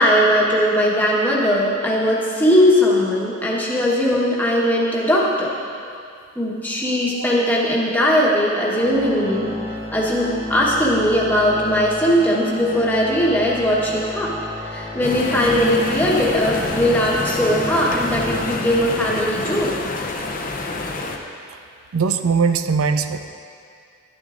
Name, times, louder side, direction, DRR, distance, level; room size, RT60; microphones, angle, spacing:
voice 1, 0.0-5.5 6.3-9.5 9.9-14.3 14.6-19.7, equal, 10° left, -5 dB, 1.2 m, -19 dB
Organ, 8.7-19.5, left 1 dB, 15° right, 0.7 m, -31 dB
sound 1, 15.0-21.2, left 2 dB, 40° left, 0.6 m, -27 dB
voice 2, 21.9-23.3, right 5 dB, 85° right, 9 dB, 0.4 m, -20 dB
13.0 x 10.5 x 2.5 m, 2.4 s
head